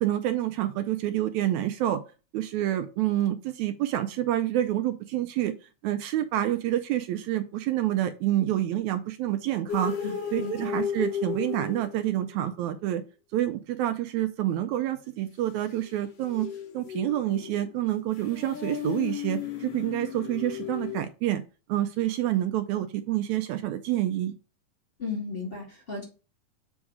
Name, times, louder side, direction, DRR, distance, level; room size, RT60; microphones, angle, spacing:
voice 1, 0.0-2.0 2.3-5.5 5.8-9.9 10.3-13.0 13.3-16.5 16.7-21.4 21.7-24.3, right 13 dB, 80° right, 9 dB, 1.9 m, -28 dB
sound 1, 9.7-12.3 15.8-21.0, left 8 dB, 60° left, 2.1 m, -35 dB
voice 2, 10.0-10.7 25.0-26.0, left 4 dB, 20° left, -3 dB, 2.0 m, -35 dB
7.2 x 3.6 x 4.8 m, 0.32 s
omnidirectional pair, 3.5 m